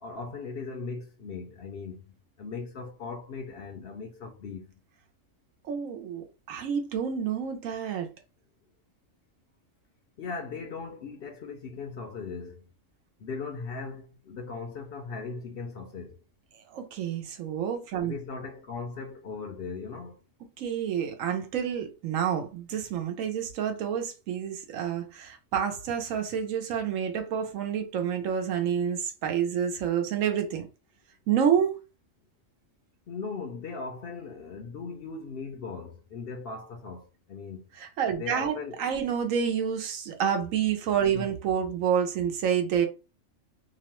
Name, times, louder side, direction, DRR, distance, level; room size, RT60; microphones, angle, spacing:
voice 1, 0.0-4.8 10.2-12.7 13.2-16.2 18.0-20.2 33.1-37.7 38.1-38.9 41.1-41.3, left 4 dB, 65° left, 0.6 m, -38 dB
voice 2, 5.7-8.1 16.7-18.2 20.6-30.7 31.3-31.7 37.8-42.9, right 8 dB, 85° right, 1.1 m, -28 dB
2.9 x 2.1 x 2.9 m
omnidirectional pair, 1.3 m